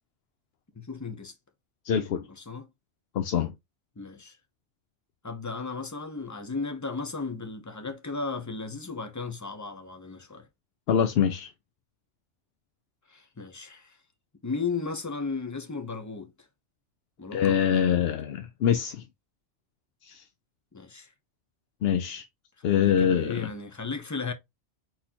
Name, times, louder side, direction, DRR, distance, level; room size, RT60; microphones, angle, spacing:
voice 1, 0.7-1.3 2.3-2.7 4.0-4.4 5.2-10.5 13.1-14.0 14.4-16.3 17.2-18.0 20.7-21.1 22.6-24.3, left 4 dB, 15° left, 0.7 m, -35 dB
voice 2, 1.8-2.3 3.1-3.5 10.9-11.5 17.3-19.0 20.0-20.2 21.8-22.2 22.6-23.5, left 8 dB, 65° left, 0.8 m, -24 dB
4.3 x 4.1 x 2.8 m
omnidirectional pair, 1.2 m